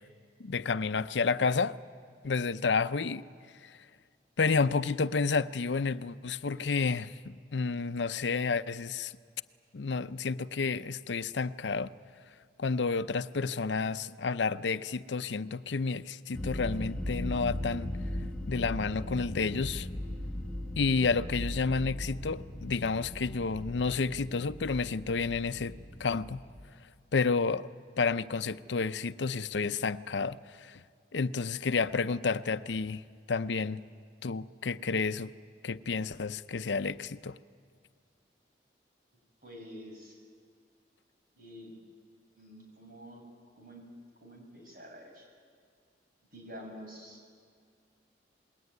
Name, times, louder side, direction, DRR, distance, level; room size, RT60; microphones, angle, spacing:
voice 1, 0.4-1.8 2.2-3.2 3.6-3.8 4.4-9.1 9.7-11.9 12.6-17.9 18.5-19.9 20.8-25.7 26.0-26.4 27.1-27.7 28.0-30.8 31.1-33.0 33.3-33.8 34.2-35.3 35.6-37.4, left 4 dB, 85° left, 0.6 m, -30 dB
sound 1, 16.3-26.6, left 1 dB, 5° left, 1.7 m, -38 dB
voice 2, 39.4-40.2 41.4-41.7 42.4-43.2 43.6-43.8 44.2-45.3 46.3-47.2, equal, 50° right, 6.2 m, -48 dB
27.5 x 21.0 x 9.4 m
head